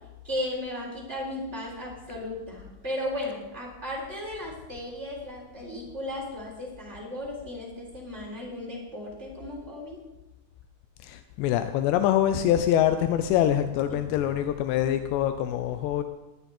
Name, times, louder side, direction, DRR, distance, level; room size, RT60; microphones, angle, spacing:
voice 1, 0.2-10.0 13.9-14.0, left 1 dB, 15° right, -3 dB, 3.6 m, -35 dB
voice 2, 11.0-16.0, left 11 dB, 80° left, 9 dB, 2.5 m, -24 dB
19.0 x 13.0 x 4.3 m, 1.0 s
omnidirectional pair, 5.6 m